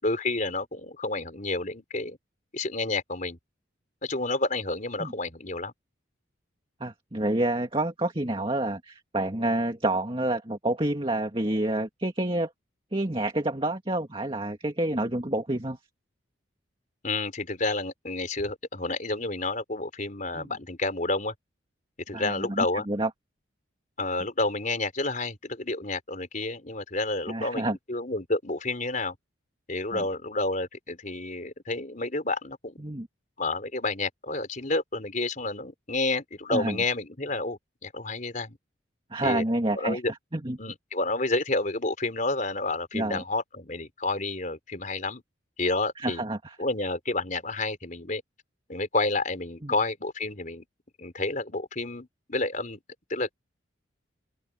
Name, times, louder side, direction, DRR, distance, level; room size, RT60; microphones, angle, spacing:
voice 1, 0.0-2.2 2.5-3.4 4.0-5.7 17.0-21.3 22.1-22.9 24.0-29.2 29.7-32.8 33.4-38.6 39.2-39.4 39.8-40.1 40.6-45.2 45.6-46.2 46.6-48.2 48.7-50.6 51.0-52.8 53.1-53.3, left 2 dB, 40° left, 4.6 m, -30 dB
voice 2, 6.8-12.5 12.9-15.8 20.3-20.5 22.1-23.1 27.3-27.8 29.9-30.0 32.8-33.1 36.5-36.8 39.1-40.6 42.9-43.2 46.0-46.6 49.6-49.7, right 1 dB, 25° right, 2.1 m, -28 dB
open air
head